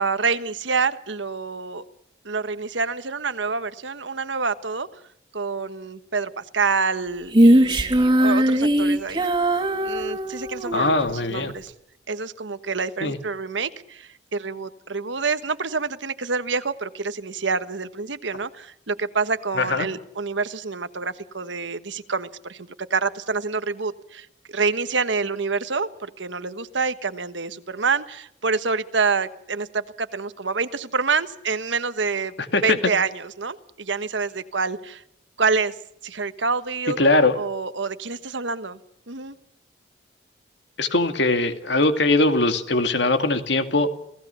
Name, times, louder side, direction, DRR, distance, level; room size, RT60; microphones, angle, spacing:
voice 1, 0.0-1.8 2.2-5.0 5.3-9.3 9.8-11.7 12.1-32.3 32.6-35.0 35.4-35.7 36.0-37.0 37.3-38.8 39.1-39.4, right 4 dB, 85° right, 12 dB, 1.3 m, -27 dB
Female singing, 7.3-10.8, right 1 dB, 25° right, 2.1 m, -19 dB
voice 2, 10.7-11.5 13.0-13.2 19.6-19.9 32.5-32.8 37.0-37.3 40.8-43.9, left 2 dB, 75° left, 8 dB, 2.3 m, -21 dB
29.0 x 17.5 x 7.0 m, 0.79 s
head